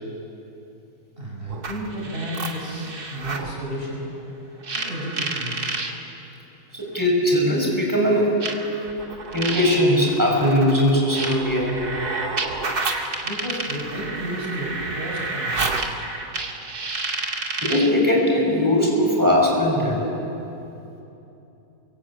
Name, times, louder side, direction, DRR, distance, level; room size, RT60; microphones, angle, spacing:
voice 1, 1.2-4.1 4.7-5.8 13.2-15.7, right 1 dB, 35° right, -3 dB, 6.5 m, -32 dB
sound 1, 1.5-3.5 4.6-5.9 7.0-7.1 8.4-18.0, right 3 dB, 80° right, 2.6 m, -30 dB
voice 2, 6.7-8.3 9.3-11.8 17.6-20.0, left 1 dB, 10° right, -2 dB, 5.9 m, -20 dB
28.5 x 23.5 x 8.9 m, 3.0 s
omnidirectional pair, 1.6 m